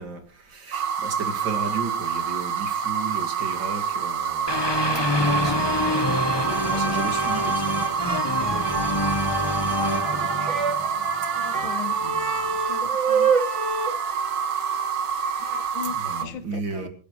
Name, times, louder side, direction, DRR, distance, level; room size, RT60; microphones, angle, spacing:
voice 1, 0.0-4.7 5.1-10.6 10.9-11.7 12.0-12.6 13.6-13.9 15.8-16.9, right 4 dB, 65° right, 3.0 m, -36 dB
sound 1, 0.7-16.2, right 7 dB, 80° right, 2.1 m, -27 dB
sound 2, 4.5-11.4, left 2 dB, 30° left, 0.4 m, -27 dB
sound 3, 7.3-7.9 8.1-8.2 8.7-8.8 9.2-9.3 9.7-15.7, right 5 dB, 35° right, 2.8 m, -29 dB
voice 2, 11.3-12.0 12.7-13.3 15.4-16.9, left 9 dB, 80° left, 1.7 m, -38 dB
26.5 x 12.5 x 3.2 m
omnidirectional pair, 2.2 m